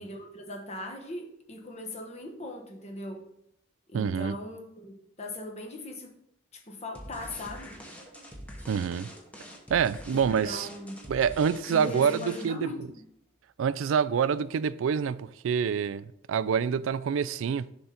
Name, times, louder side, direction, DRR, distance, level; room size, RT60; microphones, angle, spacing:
voice 1, 0.0-3.2 3.9-6.1 6.5-7.8 10.1-11.0 11.7-13.1, left 1 dB, 35° left, 1.1 m, -39 dB
voice 2, 3.9-4.4 8.7-9.1 9.7-10.7 11.1-12.7 13.6-17.7, right 7 dB, 75° right, 0.3 m, -27 dB
sound 1, 6.9-12.7, equal, 5° left, 1.0 m, -45 dB
6.8 x 3.9 x 5.7 m
head